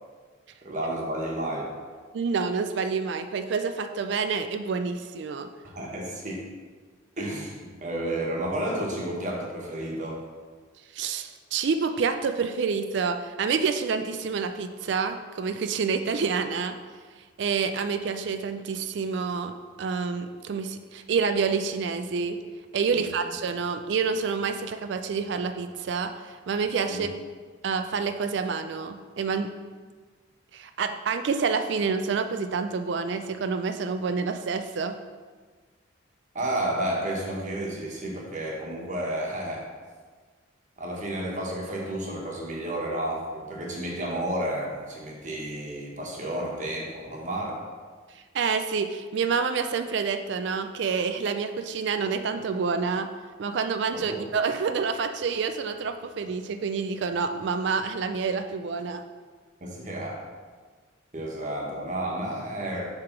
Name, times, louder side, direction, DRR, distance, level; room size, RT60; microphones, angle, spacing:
voice 1, 0.6-1.7 5.6-6.5 7.2-10.2 22.9-23.1 26.9-27.1 36.3-39.6 40.8-47.6 53.9-54.2 59.6-60.2 61.1-62.9, right 1 dB, 40° right, -1 dB, 1.2 m, -31 dB
voice 2, 2.1-5.5 10.9-16.7 17.4-19.5 19.8-22.4 22.7-26.1 26.5-27.1 27.6-29.5 30.5-35.0 48.3-53.1 53.4-59.0, right 5 dB, 60° right, 8 dB, 0.4 m, -28 dB
6.8 x 3.4 x 5.8 m, 1.5 s
head